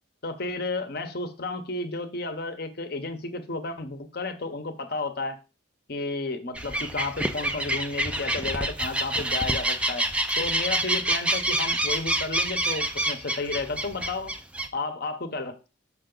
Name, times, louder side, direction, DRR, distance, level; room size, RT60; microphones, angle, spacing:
voice 1, 0.2-5.4 5.9-10.0 10.4-14.3 14.7-15.7, left 3 dB, 50° left, 9 dB, 0.9 m, -32 dB
sound 1, 6.5-14.7, right 1 dB, 5° right, 0.4 m, -27 dB
6.2 x 5.7 x 3.8 m, 0.32 s
head